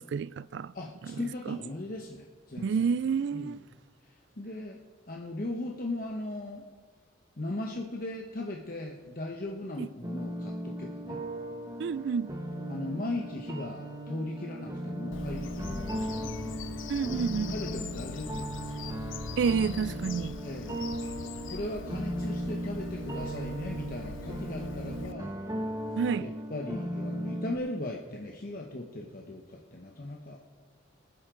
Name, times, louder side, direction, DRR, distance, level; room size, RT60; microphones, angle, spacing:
voice 1, 0.0-0.7 1.0-1.2 1.5-1.6 2.6-3.6 9.8-9.9 11.8-12.3 16.9-17.6 19.4-20.4 26.0-26.3, right 6 dB, 60° right, 0.3 m, -29 dB
voice 2, 0.7-2.9 3.3-3.6 4.0-4.8 5.1-6.6 7.4-11.2 12.7-16.5 17.0-18.9 20.4-20.9 21.5-25.4 26.2-30.4, left 2 dB, 45° left, 1.0 m, -38 dB
sound 1, 10.0-27.6, right 1 dB, 20° right, 1.0 m, -37 dB
Bird vocalization bird call bird song, 15.1-25.1, left 5 dB, 75° left, 0.5 m, -42 dB
24.5 x 9.6 x 3.8 m
head